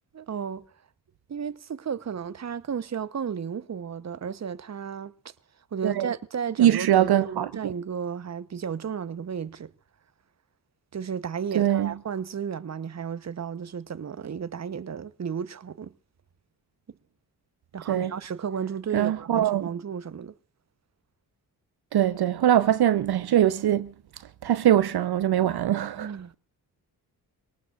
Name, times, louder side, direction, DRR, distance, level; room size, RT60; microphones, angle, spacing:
voice 1, 0.1-0.6 1.3-5.3 5.7-9.7 10.9-15.9 17.7-20.3 26.0-26.3, right 7 dB, 40° right, 1.0 m, -33 dB
voice 2, 6.6-7.7 11.5-11.9 17.9-18.1 18.9-19.7 21.9-23.9 24.4-26.1, right 11 dB, 65° right, 0.8 m, -22 dB
24.5 x 19.0 x 2.5 m
supercardioid pair, 50°, 42 cm